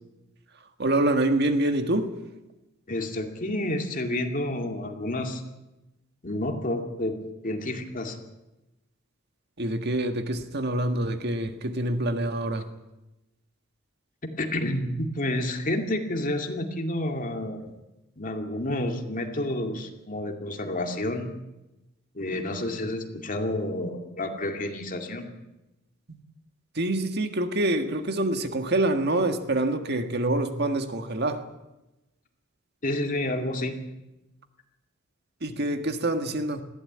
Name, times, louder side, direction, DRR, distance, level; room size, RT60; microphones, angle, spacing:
voice 1, 0.8-2.1 9.6-12.7 26.7-31.4 35.4-36.6, right 1 dB, 55° right, 1.7 m, -26 dB
voice 2, 2.9-5.4 6.2-7.2 7.4-8.2 14.2-17.7 18.2-21.3 22.1-25.3 32.8-33.8, left 1 dB, 45° left, 2.4 m, -29 dB
20.0 x 15.5 x 8.7 m
head